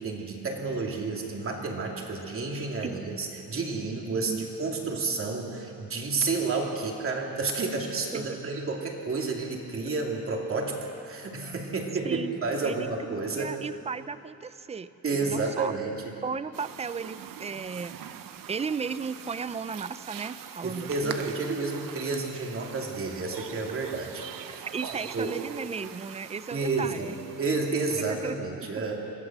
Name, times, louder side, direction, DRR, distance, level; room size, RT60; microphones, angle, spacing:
voice 1, 0.0-4.3 4.6-13.5 15.0-16.0 20.6-24.6 25.1-25.4 26.5-27.1 27.4-29.0, right 3 dB, 40° right, 0 dB, 2.8 m, -30 dB
voice 2, 12.6-15.7 16.2-17.9 18.5-21.2 24.5-27.2 28.0-28.8, right 5 dB, 20° right, 14 dB, 0.5 m, -35 dB
sound 1, 16.5-28.3, right 9 dB, 70° right, 1.0 m, -43 dB
23.5 x 15.0 x 7.4 m, 2.9 s
cardioid pair, 140°, 35 cm